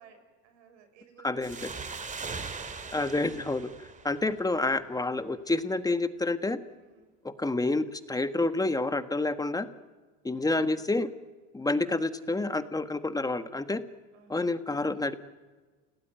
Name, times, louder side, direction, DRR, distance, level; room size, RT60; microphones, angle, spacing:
voice 1, 0.0-1.4 1.7-3.4 6.7-7.2 10.4-11.0 14.1-14.5, right 6 dB, 85° right, 8 dB, 6.1 m, -58 dB
voice 2, 1.2-1.7 2.9-6.6 7.2-9.7 10.2-11.1 11.5-13.8 14.3-15.2, left 2 dB, 10° left, 10 dB, 1.4 m, -29 dB
sound 1, 1.4-4.8, right 4 dB, 20° right, 2.1 m, -40 dB
29.5 x 18.0 x 9.4 m, 1.3 s
supercardioid pair, 110°, 37 cm